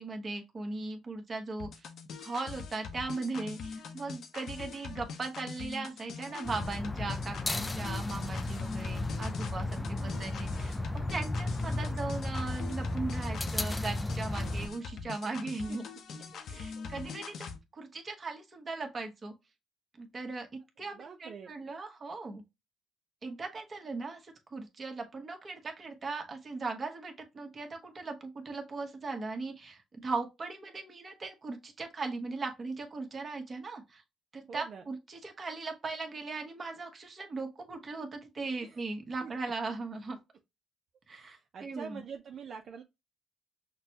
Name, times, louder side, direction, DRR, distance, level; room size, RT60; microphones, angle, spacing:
voice 1, 0.0-1.9 2.2-15.8 16.1-16.2 16.5-17.3 17.7-19.3 20.0-22.4 23.2-34.0 34.3-40.2 41.1-42.0, right 3 dB, 35° right, 1.1 m, -38 dB
sound 1, 1.6-17.6, left 5 dB, 70° left, 0.7 m, -43 dB
sound 2, 6.5-14.7, left 2 dB, 20° left, 0.4 m, -34 dB
voice 2, 9.6-10.3 15.2-15.4 15.7-15.8 16.3-17.1 20.9-21.5 34.5-34.9 38.6-38.8 39.2-39.3 41.1-42.8, right 6 dB, 60° right, 0.5 m, -46 dB
5.8 x 2.2 x 2.8 m
cardioid pair, 90°, 0 cm